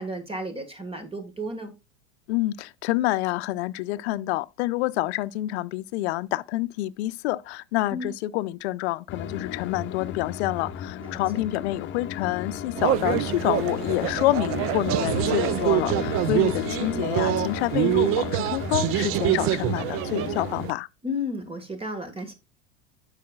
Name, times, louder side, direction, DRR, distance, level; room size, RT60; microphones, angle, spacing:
voice 1, 0.0-1.7 7.9-8.1 11.0-11.2 16.3-16.6 16.9-17.0 21.0-22.3, left 1 dB, 15° right, 1.6 m, -33 dB
voice 2, 2.3-20.9, left 17 dB, 70° left, 0.6 m, -27 dB
sound 1, 9.1-20.7, left 9 dB, 35° left, 0.9 m, -34 dB
sound 2, 12.8-20.7, right 15 dB, 40° right, 0.5 m, -26 dB
12.0 x 4.9 x 2.3 m
hypercardioid pair, 105°, 34 cm